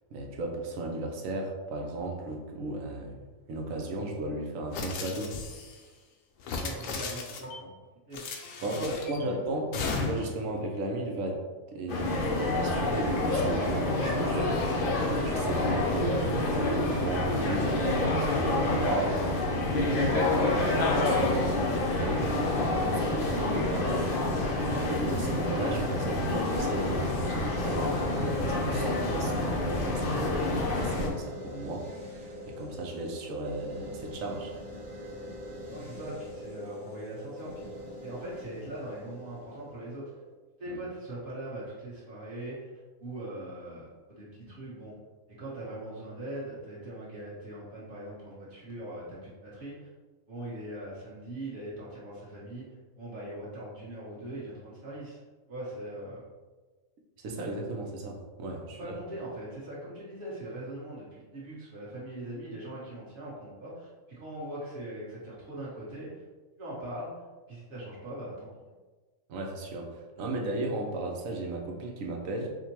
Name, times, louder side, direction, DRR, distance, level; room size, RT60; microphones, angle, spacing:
voice 1, 0.1-3.2 3.5-5.4 8.6-11.4 11.7-14.6 15.2-19.5 19.7-22.3 22.9-24.1 24.7-34.5 40.7-40.8 57.2-59.0 69.3-72.5, right 2 dB, 80° right, 1 dB, 1.0 m, -35 dB
sound 1, 4.7-5.8 6.4-7.6 8.1-9.2 9.7-10.4, left 4 dB, 75° left, 1.0 m, -35 dB
voice 2, 6.6-7.7 8.1-9.4 35.7-37.7 38.0-40.0 40.6-42.7 43.0-44.9 45.4-49.9 50.3-52.6 53.0-55.2 55.5-56.2 58.8-66.2 66.6-67.1 67.5-68.5, right 1 dB, 45° right, -8 dB, 1.4 m, -41 dB
sound 2, 11.9-31.1, left 2 dB, 55° left, 0.7 m, -28 dB
sound 3, 21.3-40.3, equal, 25° right, 1.3 m, -43 dB
4.9 x 2.1 x 2.9 m, 1.3 s
omnidirectional pair, 1.4 m